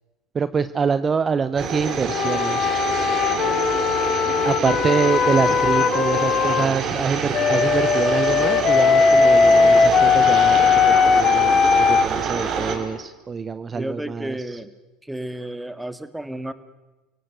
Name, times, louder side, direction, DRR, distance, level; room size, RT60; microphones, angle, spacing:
voice 1, 0.3-2.8 4.4-14.6, right 6 dB, 30° right, 13 dB, 0.9 m, -25 dB
sound 1, 1.6-12.8, right 5 dB, 50° right, 4.9 m, -26 dB
sound 2, 2.1-6.7 7.3-12.1, left 6 dB, 45° left, 2.0 m, -18 dB
voice 2, 13.7-14.7 15.1-16.5, right 1 dB, 5° right, 12 dB, 2.0 m, -32 dB
29.5 x 17.5 x 8.1 m, 1.1 s
hypercardioid pair, 80°, 0 cm